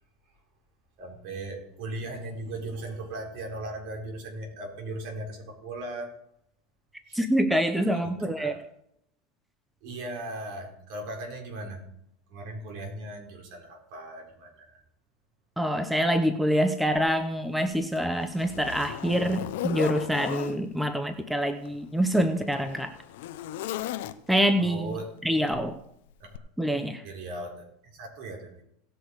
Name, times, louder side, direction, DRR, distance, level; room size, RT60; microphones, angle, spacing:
voice 1, 1.0-6.1 7.1-7.2 7.9-8.6 9.8-11.8 12.3-14.8 24.6-25.1 26.2-26.4 27.0-27.7 27.9-28.6, right 2 dB, 60° right, 1 dB, 4.4 m, -38 dB
voice 2, 7.1-8.5 15.6-23.0 24.3-24.9 25.2-25.8 26.6-27.0, equal, 5° right, 8 dB, 0.8 m, -26 dB
Zipper (clothing), 17.0-17.1 17.7-20.6 21.6-24.5 25.5-25.7 26.3-26.4, left 13 dB, 75° left, 0.7 m, -36 dB
18.0 x 6.3 x 4.8 m, 0.75 s
supercardioid pair, 115°, 0 cm